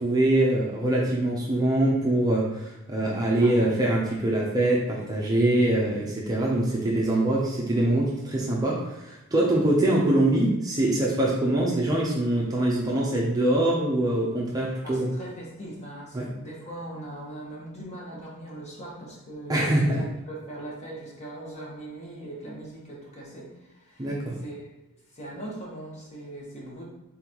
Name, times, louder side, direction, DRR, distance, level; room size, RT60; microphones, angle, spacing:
voice 1, 0.0-15.1 16.1-16.2 19.5-20.0 24.0-24.3, right 1 dB, 15° right, -4 dB, 0.6 m, -24 dB
voice 2, 3.4-3.9 14.6-20.0 20.3-24.7 25.1-26.8, right 1 dB, 30° left, -4 dB, 1.1 m, -40 dB
3.9 x 3.8 x 2.9 m, 0.95 s
head